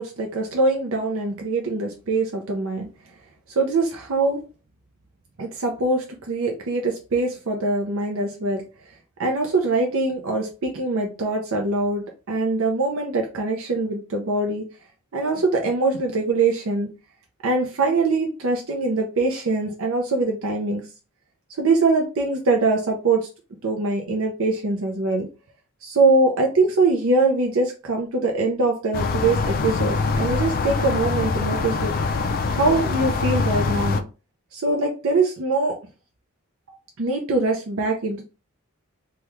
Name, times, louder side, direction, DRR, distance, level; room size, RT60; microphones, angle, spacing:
voice 1, 0.0-2.9 3.6-4.4 5.4-8.6 9.2-14.7 15.1-16.9 17.4-20.8 21.6-23.3 23.6-25.3 25.8-31.9 32.5-34.1 34.5-35.8 37.0-38.3, right 3 dB, 65° right, 1 dB, 0.6 m, -23 dB
sound 1, 28.9-34.0, left 4 dB, 40° left, 0.3 m, -24 dB
3.0 x 2.3 x 3.3 m, 0.32 s
head